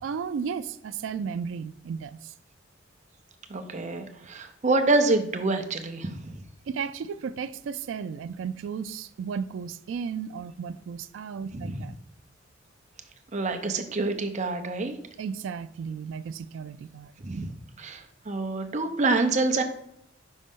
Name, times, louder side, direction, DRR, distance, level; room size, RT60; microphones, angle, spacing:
voice 1, 0.0-2.3 6.7-11.9 15.2-17.1, right 6 dB, 80° right, 0.3 m, -34 dB
voice 2, 3.5-6.4 11.5-11.9 13.3-15.0 17.2-17.5 17.8-19.6, right 3 dB, 40° right, 0.6 m, -27 dB
5.3 x 5.0 x 3.6 m
head